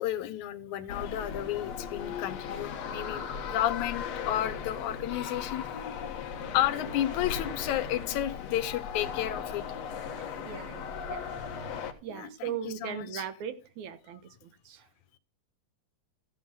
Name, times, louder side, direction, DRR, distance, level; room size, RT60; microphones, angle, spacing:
voice 1, 0.0-3.2 3.5-5.6 6.5-9.6 12.1-13.2, left 12 dB, 85° left, 2.3 m, -32 dB
sound 1, 0.9-11.9, left 7 dB, 65° left, 2.2 m, -37 dB
voice 2, 10.2-11.3 12.0-14.9, right 9 dB, 80° right, 2.5 m, -39 dB
14.0 x 9.3 x 3.8 m
omnidirectional pair, 3.3 m